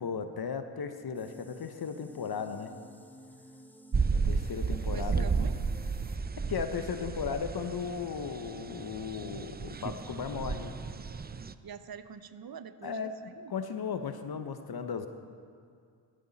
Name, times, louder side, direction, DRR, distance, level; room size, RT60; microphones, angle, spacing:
voice 1, 0.0-2.7 4.1-5.5 6.5-10.8 12.8-15.1, left 6 dB, 45° left, 8 dB, 1.2 m, -36 dB
sound 1, 1.1-6.2, equal, 5° left, 1.5 m, -54 dB
sound 2, 3.9-11.5, right 5 dB, 20° right, 0.6 m, -33 dB
voice 2, 4.7-5.6 11.6-13.5, right 7 dB, 45° right, 12 dB, 1.0 m, -45 dB
17.5 x 13.5 x 4.2 m, 2.3 s
hypercardioid pair, 45°, 49 cm